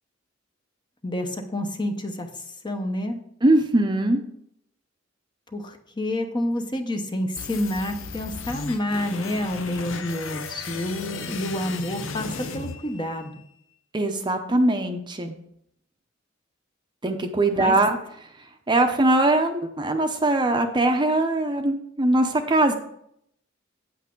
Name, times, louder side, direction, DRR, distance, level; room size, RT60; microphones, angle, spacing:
voice 1, 1.0-2.3 2.6-3.2 5.5-13.3 17.5-17.8, left 1 dB, 25° left, 5 dB, 0.9 m, -28 dB
voice 2, 3.4-4.2 13.9-15.3 17.0-18.0 18.7-22.7, right 2 dB, 25° right, 5 dB, 0.7 m, -21 dB
sound 1, 7.4-13.4, left 4 dB, 90° left, 0.8 m, -35 dB
8.3 x 8.1 x 3.8 m, 0.72 s
head